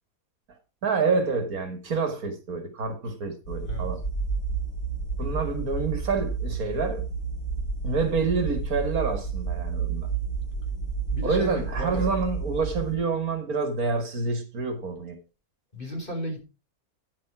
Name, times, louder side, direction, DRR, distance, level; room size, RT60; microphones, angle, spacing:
voice 1, 0.8-4.0 5.2-7.1 7.8-10.1 11.2-15.2, right 4 dB, 80° right, 2.4 m, -27 dB
sound 1, 3.4-13.0, right 4 dB, 80° left, 3.6 m, -31 dB
voice 2, 11.1-12.1 15.7-16.4, equal, 35° left, 4.0 m, -34 dB
9.9 x 7.6 x 4.8 m
omnidirectional pair, 1.5 m